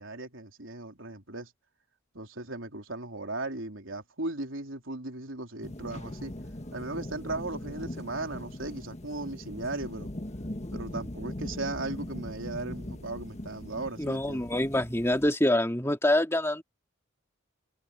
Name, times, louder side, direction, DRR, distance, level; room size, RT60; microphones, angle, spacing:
voice 1, 0.0-1.5 2.1-6.3 6.7-10.1 10.7-14.5, right 2 dB, 70° right, 3.7 m, -37 dB
sound 1, 5.6-15.3, left 1 dB, 30° left, 1.6 m, -40 dB
voice 2, 14.0-16.6, left 1 dB, 10° left, 2.2 m, -26 dB
head